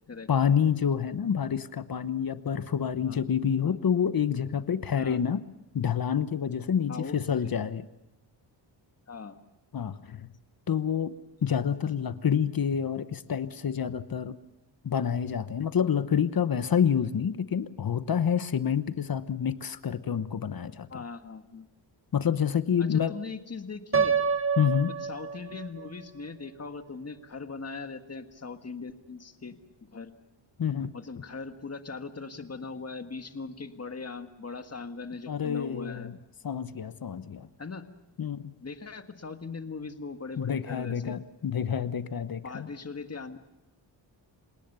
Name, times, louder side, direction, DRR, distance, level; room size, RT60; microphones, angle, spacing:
voice 1, 0.3-5.4 5.7-7.8 9.7-10.3 10.7-11.2 11.4-14.4 14.8-21.0 22.1-23.1 24.6-24.9 30.6-30.9 35.3-36.2 36.4-37.5 38.2-38.5 40.4-42.7, left 8 dB, 50° left, 13 dB, 1.0 m, -28 dB
voice 2, 6.9-7.5 9.1-9.4 20.9-21.7 22.8-24.1 24.9-29.6 29.8-30.1 30.9-36.1 37.6-37.8 38.6-41.2 42.4-43.4, left 4 dB, 35° left, 8 dB, 1.7 m, -40 dB
Piano, 23.9-25.9, right 6 dB, 30° right, 1.9 m, -27 dB
27.5 x 18.5 x 6.9 m, 0.94 s
wide cardioid pair, 110°, 46 cm